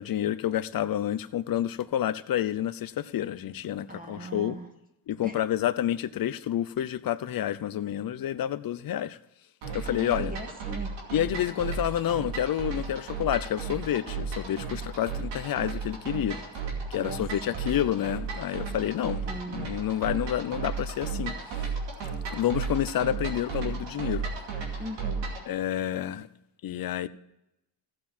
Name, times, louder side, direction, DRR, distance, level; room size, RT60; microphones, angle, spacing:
voice 1, 0.0-4.6 5.1-9.2 9.7-10.3 11.1-16.4 16.9-21.7 22.3-24.2 25.5-26.3 26.6-27.1, left 11 dB, 55° left, 0.8 m, -29 dB
voice 2, 3.9-4.7 5.2-5.4 9.8-10.9 17.0-17.7 19.3-19.7 24.8-25.3, right 1 dB, 20° right, 2.2 m, -39 dB
sound 1, 9.6-25.5, right 5 dB, 90° right, 2.6 m, -34 dB
14.5 x 7.6 x 4.4 m
cardioid pair, 90°, 42 cm